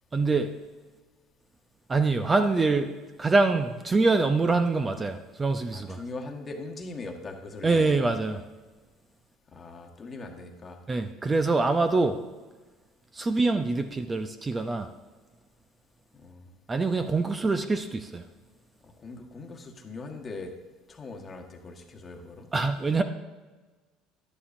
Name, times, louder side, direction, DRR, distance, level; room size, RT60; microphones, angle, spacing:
voice 1, 0.1-0.5 1.9-2.9 3.2-6.0 7.6-8.4 10.9-12.2 13.1-14.9 16.7-18.2 22.5-23.0, right 3 dB, 25° right, 8 dB, 0.6 m, -25 dB
voice 2, 5.7-8.1 9.5-10.8 16.2-16.4 19.0-20.5 20.9-22.5, left 3 dB, 30° left, 3 dB, 1.3 m, -40 dB
11.0 x 9.8 x 2.6 m, 1.3 s
supercardioid pair, 85°, 0 cm